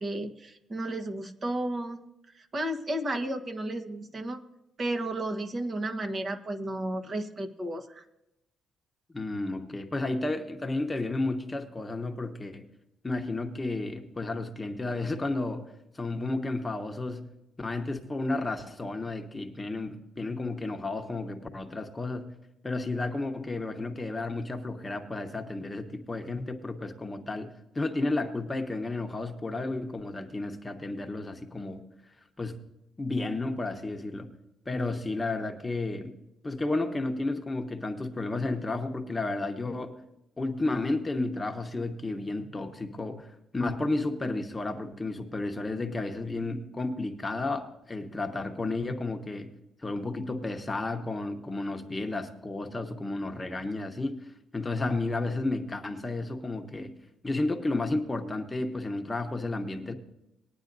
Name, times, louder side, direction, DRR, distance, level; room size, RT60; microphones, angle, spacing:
voice 1, 0.0-2.0 2.3-4.4 4.8-8.0, right 1 dB, 40° right, 6 dB, 1.3 m, -33 dB
voice 2, 9.1-12.7 13.0-17.3 17.6-22.3 22.6-31.8 32.4-32.6 33.0-34.3 34.7-36.1 36.4-40.0 40.4-49.5 49.8-54.3 54.5-56.9 57.2-59.9, left 2 dB, 20° left, 6 dB, 1.0 m, -32 dB
20.0 x 9.5 x 2.7 m, 0.88 s
cardioid pair, 90°, 0 cm